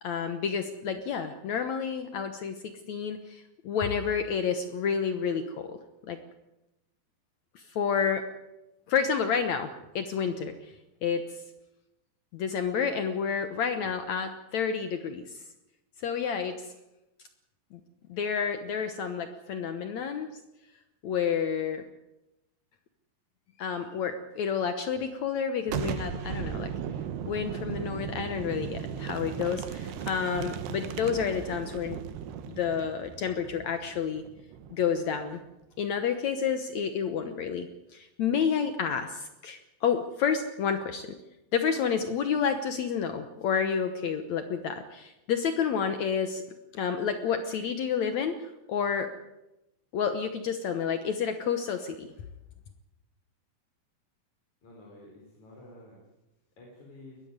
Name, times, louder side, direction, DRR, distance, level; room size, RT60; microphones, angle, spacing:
voice 1, 0.0-2.6 2.9-5.8 6.0-6.2 7.5-8.2 8.9-10.7 11.0-11.2 12.3-15.4 16.0-16.5 17.7-17.8 18.1-20.3 21.0-21.8 23.6-26.7 27.3-32.0 32.5-34.2 34.7-35.4 35.8-37.7 37.9-41.1 41.5-46.4 46.7-49.1 49.9-52.1, left 7 dB, 80° left, 8 dB, 1.6 m, -30 dB
Boom, 25.7-35.2, right 8 dB, 75° right, 3.1 m, -37 dB
voice 2, 54.6-56.0 56.6-57.2, left 1 dB, 45° left, -2 dB, 5.5 m, -50 dB
21.0 x 14.0 x 9.5 m, 0.94 s
omnidirectional pair, 4.9 m